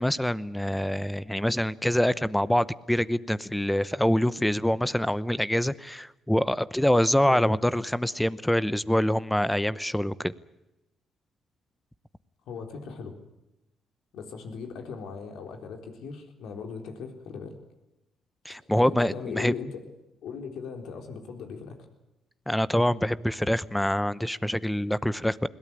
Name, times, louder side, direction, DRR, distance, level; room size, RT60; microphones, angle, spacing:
voice 1, 0.0-10.3 18.4-19.5 22.5-25.5, equal, 5° left, 17 dB, 0.8 m, -25 dB
voice 2, 12.5-13.1 14.1-17.6 18.5-19.8 20.2-21.8, left 5 dB, 80° left, 5 dB, 4.0 m, -39 dB
21.5 x 17.5 x 9.8 m, 0.94 s
cardioid pair, 90°, 0 cm